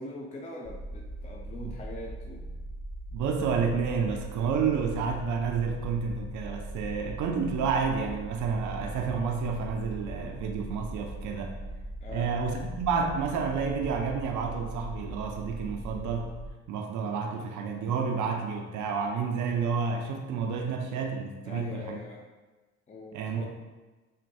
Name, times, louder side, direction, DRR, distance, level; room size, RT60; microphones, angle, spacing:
voice 1, 0.0-2.5 12.0-12.3 20.6-20.8 21.4-22.2 22.9-23.5, left 1 dB, 25° left, -1 dB, 0.5 m, -42 dB
sound 1, 0.7-16.5, right 1 dB, 45° left, 1.0 m, -40 dB
voice 2, 3.1-11.5 12.1-16.3 16.7-22.0 23.1-23.5, right 5 dB, 75° right, 2 dB, 0.5 m, -30 dB
6.3 x 2.2 x 2.7 m, 1.2 s
cardioid pair, 90°, 30 cm